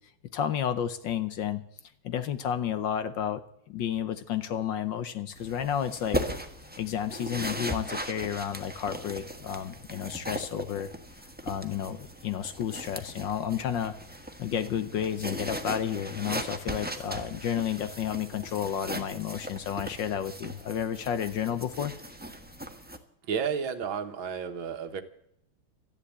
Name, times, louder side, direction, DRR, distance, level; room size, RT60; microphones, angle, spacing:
voice 1, 0.3-1.6 2.0-3.4 3.7-6.2 6.8-10.9 11.2-14.0 14.4-21.9, left 9 dB, 65° left, 12 dB, 1.4 m, -31 dB
sound 1, 5.4-23.0, equal, 5° right, 0.9 m, -38 dB
voice 2, 23.3-25.0, right 6 dB, 65° right, 8 dB, 1.9 m, -32 dB
13.5 x 11.0 x 8.3 m, 0.72 s
omnidirectional pair, 2.4 m